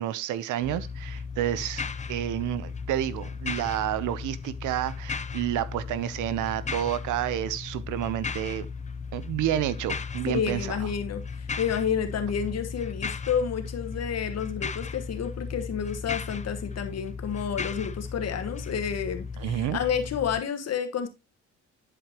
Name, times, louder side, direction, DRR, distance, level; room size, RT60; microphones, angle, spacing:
voice 1, 0.0-8.7 9.1-10.8 19.4-19.8, right 12 dB, 85° right, 0.7 m, -30 dB
sound 1, 0.6-20.4, left 5 dB, 25° left, 0.5 m, -36 dB
voice 2, 10.3-21.1, left 7 dB, 55° left, 1.4 m, -30 dB
11.0 x 5.1 x 2.9 m
cardioid pair, 90°, 30 cm